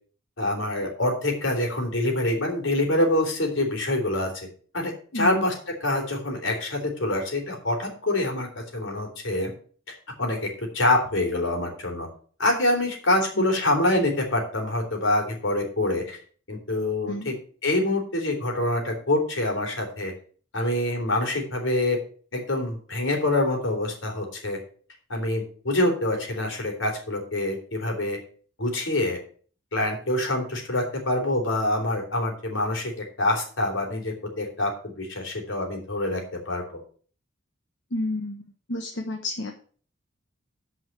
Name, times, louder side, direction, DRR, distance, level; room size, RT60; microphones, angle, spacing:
voice 1, 0.4-4.5 4.7-9.5 9.9-12.1 12.4-16.2 16.5-17.3 17.6-20.1 20.5-22.0 22.3-24.6 25.1-28.2 28.6-29.2 29.7-32.9 33.2-36.8, left 1 dB, 80° left, 2 dB, 3.6 m, -26 dB
voice 2, 5.1-5.5 13.4-13.5 17.1-17.4 37.9-39.6, left 2 dB, 65° left, 3 dB, 1.2 m, -31 dB
9.0 x 5.6 x 7.5 m, 0.43 s
head